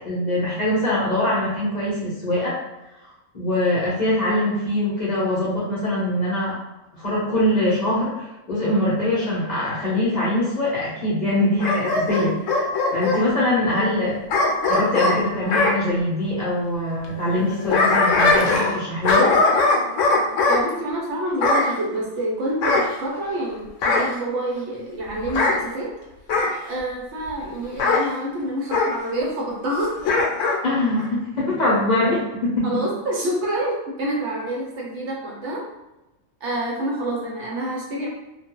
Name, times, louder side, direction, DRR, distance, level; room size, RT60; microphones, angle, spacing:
voice 1, 0.0-2.5 3.3-6.6 6.9-14.2 14.7-19.3 30.6-32.7, left 1 dB, 40° left, -8 dB, 0.7 m, -23 dB
Bark / Growling, 11.6-13.2 14.3-15.8 17.4-18.8 19.0-20.6 21.4-21.7 22.6-23.4 23.8-24.2 25.3-25.6 26.3-26.6 27.8-28.1 28.7-28.9 30.0-30.6 31.0-31.1, left 3 dB, 70° left, 0.9 m, -20 dB
voice 2, 20.5-25.9 26.7-30.0 32.6-35.6 36.4-38.1, right 1 dB, 65° right, -3 dB, 0.9 m, -27 dB
2.4 x 2.2 x 2.9 m, 0.98 s
omnidirectional pair, 1.4 m